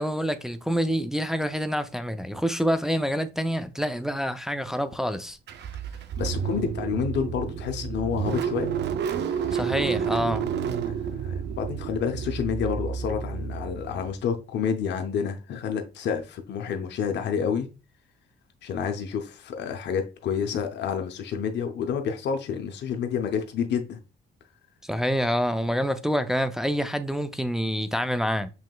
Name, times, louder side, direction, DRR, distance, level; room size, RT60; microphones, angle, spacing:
voice 1, 0.0-5.4 9.5-10.5 24.8-28.5, equal, ahead, 0.4 m, -27 dB
Car / Engine starting, 5.5-14.2, right 7 dB, 60° right, 0.5 m, -30 dB
voice 2, 6.2-8.7 9.3-9.6 10.9-17.7 18.6-24.0, left 7 dB, 60° left, 0.6 m, -29 dB
5.7 x 3.1 x 2.2 m
cardioid pair, 90°, 20 cm